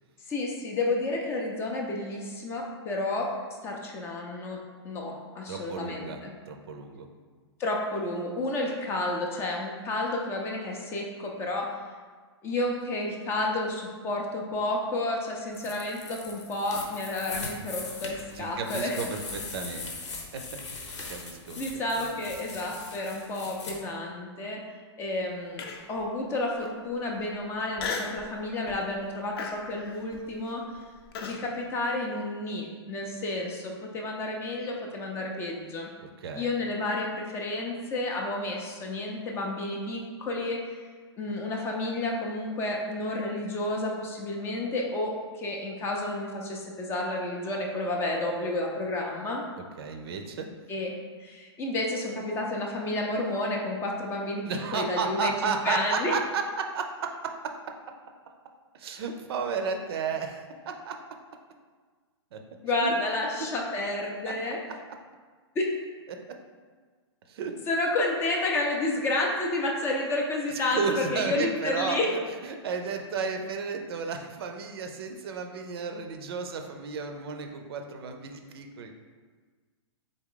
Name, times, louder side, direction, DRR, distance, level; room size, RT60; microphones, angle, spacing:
voice 1, 0.3-3.3 3.6-6.3 7.6-11.7 12.4-19.0 21.6-24.6 25.0-30.6 31.2-35.9 36.3-40.7 41.2-49.4 50.7-50.9 51.2-56.1 62.6-64.6 65.6-65.7 67.7-72.1, left 2 dB, 15° left, 0 dB, 0.4 m, -31 dB
voice 2, 5.5-6.2 6.5-7.1 18.3-19.9 20.3-20.4 21.1-21.6 22.0-22.2 36.0-36.5 49.8-50.5 54.4-57.9 58.2-58.3 58.7-61.0 62.3-62.4 62.8-63.0 64.2-64.3 66.1-66.4 67.3-67.6 70.5-72.0 72.4-78.9, right 5 dB, 60° right, 4 dB, 0.5 m, -33 dB
sound 1, 15.5-23.7, left 4 dB, 85° left, 1.0 m, -40 dB
Human voice, 25.6-26.0 26.6-26.7 27.8-28.2 28.7-28.9 29.4-31.4, left 5 dB, 55° left, 0.6 m, -35 dB
3.9 x 3.5 x 3.7 m, 1.5 s
hypercardioid pair, 150°, 15 cm